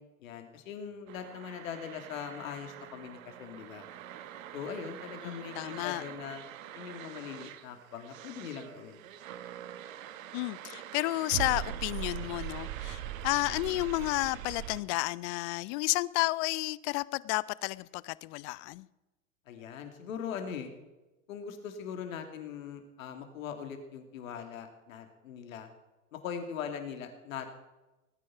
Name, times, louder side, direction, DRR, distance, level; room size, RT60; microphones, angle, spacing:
voice 1, 0.2-3.9 4.5-6.4 6.7-9.0 19.5-20.7 21.3-25.7 26.1-27.6, left 7 dB, 75° left, 7 dB, 2.8 m, -41 dB
sound 1, 1.1-14.8, right 11 dB, 75° right, 1.2 m, -42 dB
voice 2, 5.2-6.0 10.3-18.9, left 22 dB, 55° left, 21 dB, 0.7 m, -32 dB
19.0 x 9.6 x 5.9 m, 1.1 s
hypercardioid pair, 100°, 40 cm